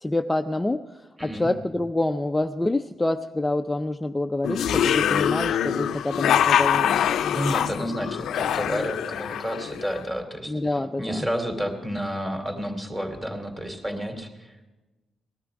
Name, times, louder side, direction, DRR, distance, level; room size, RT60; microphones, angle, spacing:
voice 1, 0.0-7.0 10.5-11.3, left 2 dB, 10° left, 6 dB, 0.5 m, -27 dB
voice 2, 1.2-1.5 7.3-10.5 11.0-14.7, equal, 15° right, 4 dB, 2.7 m, -30 dB
sound 1, 4.4-10.0, left 9 dB, 80° left, 0.6 m, -24 dB
19.5 x 13.0 x 4.8 m, 1.1 s
cardioid pair, 130°, 0 cm